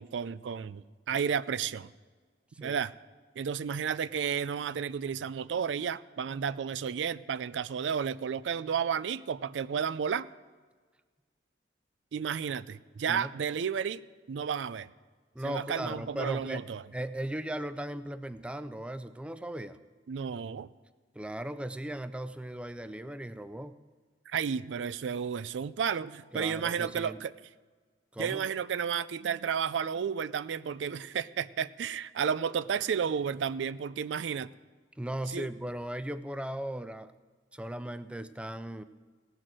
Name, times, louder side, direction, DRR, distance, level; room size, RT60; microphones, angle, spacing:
voice 1, 0.0-1.9 2.6-2.9 3.4-10.3 12.1-14.0 14.3-14.9 15.4-16.8 20.1-20.7 24.3-27.3 28.2-34.5 35.3-35.5, right 7 dB, 85° right, 17 dB, 0.4 m, -32 dB
voice 2, 15.3-19.8 21.1-23.8 26.3-27.2 28.1-28.5 35.0-37.1 37.5-38.8, right 1 dB, 5° right, 13 dB, 0.4 m, -37 dB
17.5 x 6.4 x 7.6 m, 1.4 s
head